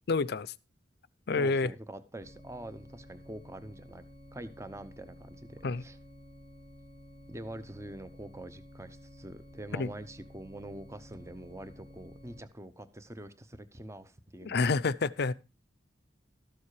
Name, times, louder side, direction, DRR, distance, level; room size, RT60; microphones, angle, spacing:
voice 1, 0.1-0.5 1.3-1.7 5.6-5.8 9.7-9.9 14.4-15.3, left 4 dB, 65° left, 0.5 m, -28 dB
voice 2, 1.4-4.0 4.3-6.0 7.3-14.7, right 1 dB, 15° right, 0.8 m, -45 dB
sound 1, 2.2-12.4, left 1 dB, 70° right, 3.5 m, -52 dB
13.5 x 7.2 x 4.8 m
head